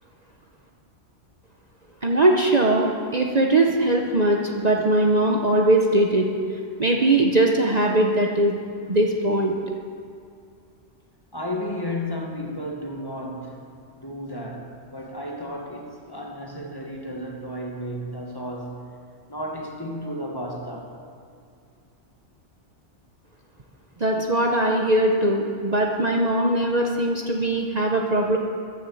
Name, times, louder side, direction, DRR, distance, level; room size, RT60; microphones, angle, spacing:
voice 1, 2.0-6.3 6.8-8.6 8.9-9.6 24.0-28.4, right 1 dB, 35° right, 0 dB, 1.0 m, -20 dB
voice 2, 11.3-13.7 13.9-18.9 19.3-21.0, equal, 20° left, 0 dB, 1.6 m, -33 dB
14.5 x 11.5 x 7.2 m, 2.3 s
omnidirectional pair, 1.2 m